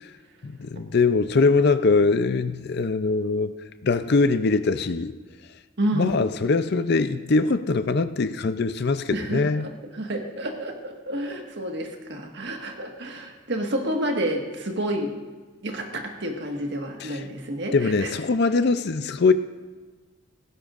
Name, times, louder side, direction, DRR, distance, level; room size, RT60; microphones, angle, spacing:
voice 1, 0.4-3.5 3.8-5.1 5.9-9.7 17.0-17.2 17.7-19.3, left 4 dB, 50° left, 11 dB, 0.5 m, -22 dB
voice 2, 5.8-6.1 9.1-15.2 15.6-18.1, right 1 dB, 55° right, 2 dB, 1.6 m, -29 dB
18.0 x 16.0 x 2.5 m, 1.3 s
head